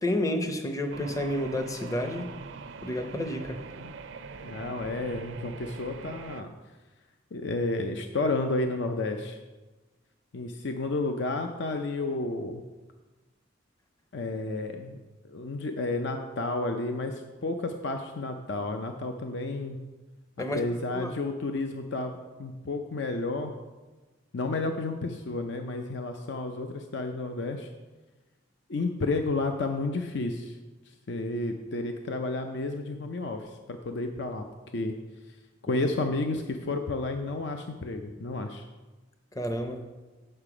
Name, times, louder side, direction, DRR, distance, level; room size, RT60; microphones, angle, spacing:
voice 1, 0.0-2.3 2.8-3.6 20.4-20.6 20.9-21.1 39.3-39.8, left 1 dB, 20° left, 5 dB, 0.6 m, -30 dB
sound 1, 0.9-6.4, right 4 dB, 80° right, 0.5 m, -42 dB
voice 2, 4.4-6.5 7.3-9.4 10.3-12.6 14.1-15.0 15.3-19.8 20.5-23.5 24.3-27.7 28.7-30.6 31.1-34.4 34.7-35.0 35.6-38.6, left 2 dB, 70° left, 5 dB, 0.6 m, -31 dB
8.8 x 6.6 x 4.9 m, 1.2 s
head